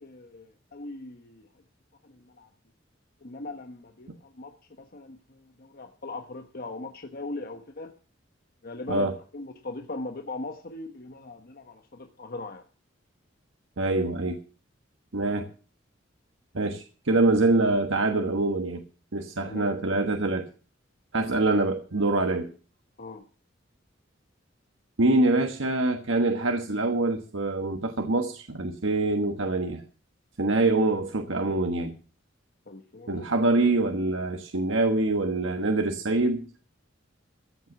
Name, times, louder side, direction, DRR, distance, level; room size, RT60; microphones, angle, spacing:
voice 1, 0.0-1.5 2.0-2.5 3.2-4.5 4.8-7.9 8.6-12.6 19.4-19.7 23.0-23.2 32.7-33.3, left 2 dB, 50° left, 1.1 m, -40 dB
voice 2, 13.8-14.4 15.1-15.5 16.5-18.8 19.1-20.4 21.1-22.5 25.0-29.8 30.4-31.9 33.1-36.5, right 2 dB, 90° right, 1.3 m, -25 dB
14.5 x 8.0 x 7.0 m
head